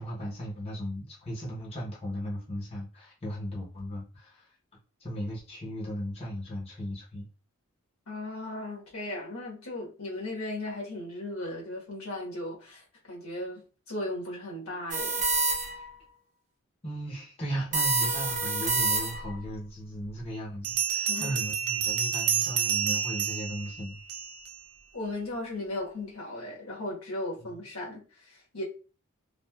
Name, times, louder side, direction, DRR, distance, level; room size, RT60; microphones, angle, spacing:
voice 1, 0.0-4.5 5.0-7.2 15.7-15.8 16.8-24.0, equal, 25° left, 0.8 m, -36 dB
voice 2, 8.1-15.3 21.1-21.4 24.9-28.6, left 1 dB, 80° left, 1.2 m, -37 dB
sound 1, 14.9-15.9 17.7-19.4, right 3 dB, 35° right, 0.6 m, -28 dB
Bell, 19.4-19.5 20.6-24.5, right 8 dB, 75° right, 0.6 m, -29 dB
3.2 x 2.3 x 2.3 m
head